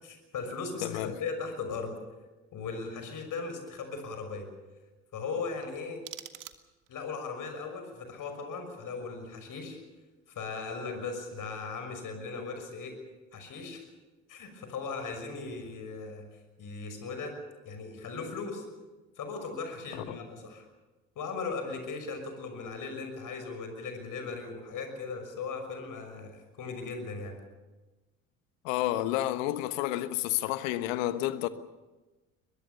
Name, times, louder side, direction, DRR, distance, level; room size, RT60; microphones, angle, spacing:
voice 1, 0.0-1.9 2.5-4.5 5.1-6.0 6.9-9.8 10.3-12.9 13.3-13.8 14.3-16.2 16.6-17.4 17.6-18.6 19.2-20.6 21.2-27.4, left 4 dB, 50° left, 6.2 m, -38 dB
voice 2, 0.8-1.1 20.1-20.2 28.6-31.5, left 14 dB, 70° left, 1.3 m, -30 dB
sound 1, 5.6-7.1, right 11 dB, 50° right, 1.7 m, -47 dB
22.5 x 22.0 x 6.9 m
hypercardioid pair, 55°, 41 cm